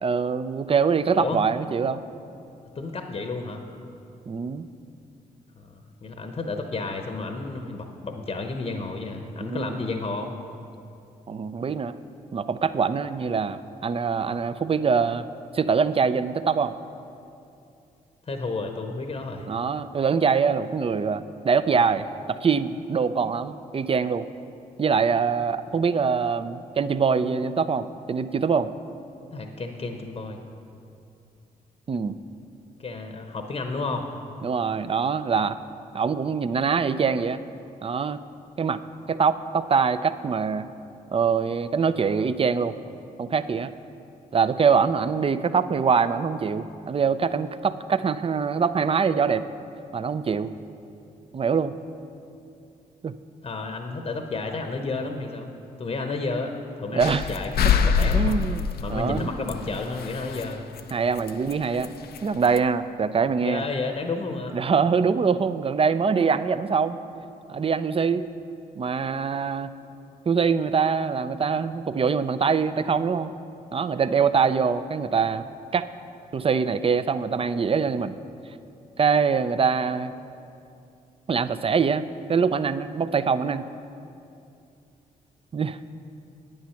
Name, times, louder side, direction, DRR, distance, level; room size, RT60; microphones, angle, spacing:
voice 1, 0.0-2.0 4.3-4.7 9.4-9.7 11.3-12.0 12.3-15.2 15.5-16.8 19.5-24.3 24.8-28.7 31.9-32.1 34.4-35.6 35.9-37.4 37.8-38.2 38.6-38.8 39.1-40.7 41.1-42.8 43.2-43.7 44.3-49.4 49.9-50.5 51.3-51.7 53.0-53.1 56.9-57.3 58.1-59.3 60.9-61.9 62.2-63.6 64.5-67.0 67.5-68.3 68.8-69.7 70.3-73.3 73.7-75.4 75.7-75.9 76.3-78.2 79.0-80.1 81.3-83.6 85.5-85.8, right 5 dB, 35° right, 13 dB, 0.5 m, -24 dB
voice 2, 2.7-3.6 5.6-10.3 18.3-19.5 29.3-30.4 32.8-34.1 53.4-55.5 55.8-58.4 58.8-60.6 63.4-64.6, left 3 dB, 35° left, 5 dB, 0.9 m, -31 dB
sound 1, 57.0-60.5 60.8-60.9 61.2-62.2 62.4-62.6, left 7 dB, 70° left, 0.5 m, -25 dB
9.1 x 8.8 x 5.8 m, 2.6 s
supercardioid pair, 55°, 17 cm